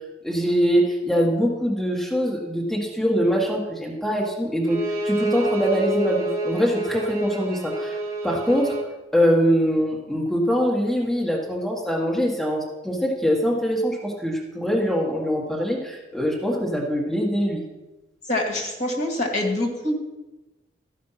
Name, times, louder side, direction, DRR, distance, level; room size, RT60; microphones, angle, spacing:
voice 1, 0.2-4.8 5.0-8.0 8.2-8.7 9.1-17.6, equal, ahead, -3 dB, 1.6 m, -23 dB
Bowed string instrument, 4.7-8.9, right 2 dB, 15° right, 1.3 m, -28 dB
voice 2, 18.3-20.0, left 1 dB, 45° left, 0 dB, 2.1 m, -25 dB
13.5 x 5.2 x 5.8 m, 1.1 s
head